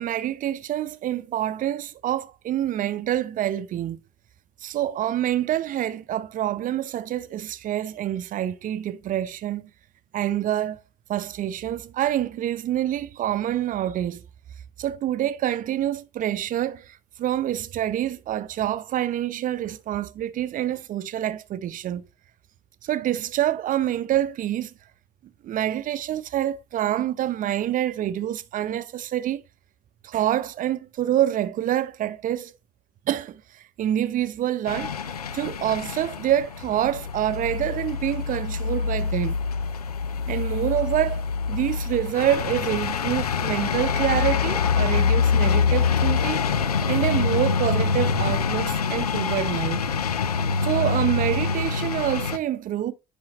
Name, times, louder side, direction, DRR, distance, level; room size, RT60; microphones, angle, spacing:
voice 1, 0.0-4.0 4.6-9.7 10.1-10.8 11.1-14.2 14.8-22.1 22.8-24.7 25.4-29.4 30.0-32.5 33.1-39.4 40.3-46.5 46.9-49.8 50.6-52.9, right 12 dB, 45° right, 0.7 m, -26 dB
sound 1, 34.7-52.4, left 5 dB, 85° left, 0.4 m, -25 dB
9.6 x 5.0 x 3.0 m
figure-of-eight pair, 55°, 19 cm